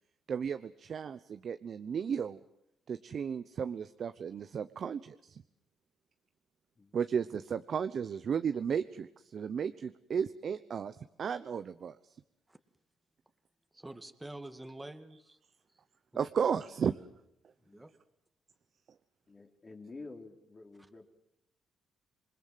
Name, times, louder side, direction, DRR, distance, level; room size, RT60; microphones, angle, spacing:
voice 1, 0.3-2.4 2.9-5.4 6.9-12.2 16.2-17.0, right 7 dB, 55° right, 11 dB, 0.9 m, -34 dB
voice 2, 13.7-15.4 15.7-15.8 17.6-17.9, right 1 dB, 10° right, 8 dB, 2.1 m, -47 dB
voice 3, 17.5-17.8 19.3-21.1, left 3 dB, 30° left, 3 dB, 3.6 m, -50 dB
27.5 x 21.5 x 7.6 m, 0.78 s
cardioid pair, 90°, 0 cm